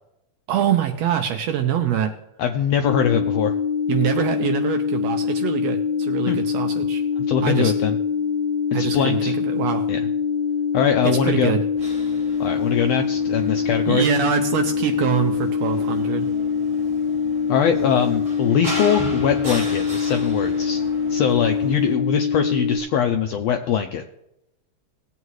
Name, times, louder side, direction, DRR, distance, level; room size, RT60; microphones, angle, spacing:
voice 1, 0.5-2.1 3.9-7.0 7.4-7.7 8.7-9.9 11.0-11.6 13.9-16.3, right 9 dB, 75° right, 7 dB, 1.6 m, -24 dB
voice 2, 2.4-3.6 6.3-6.4 7.3-7.9 8.7-9.3 9.9-10.1 10.7-11.5 12.4-14.0 17.5-20.8 21.1-24.0, left 7 dB, 80° left, 6 dB, 1.5 m, -22 dB
sound 1, 2.8-22.8, left 6 dB, 5° right, 1.1 m, -24 dB
sound 2, 11.8-21.9, right 1 dB, 25° right, 4.1 m, -36 dB
18.5 x 8.2 x 3.1 m, 0.85 s
omnidirectional pair, 3.5 m